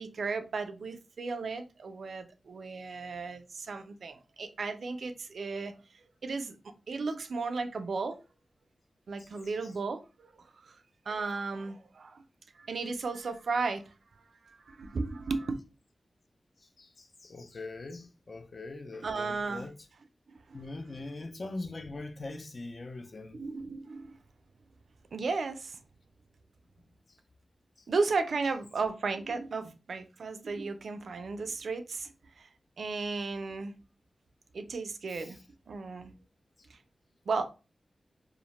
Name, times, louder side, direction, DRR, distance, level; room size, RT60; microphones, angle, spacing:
voice 1, 0.0-6.6 6.9-8.2 9.1-10.8 11.1-12.2 12.5-13.9 14.5-15.6 19.0-19.7 20.3-20.6 23.3-24.2 25.1-25.8 27.9-32.5 32.8-33.7 34.5-35.4 35.7-36.1 36.7-36.8 37.3-37.5, right 4 dB, 80° right, 0.3 m, -35 dB
voice 2, 16.8-19.7 20.5-23.4 35.1-35.3, left 2 dB, 45° left, 0.3 m, -42 dB
2.4 x 2.0 x 2.9 m
wide cardioid pair, 115°, 0 cm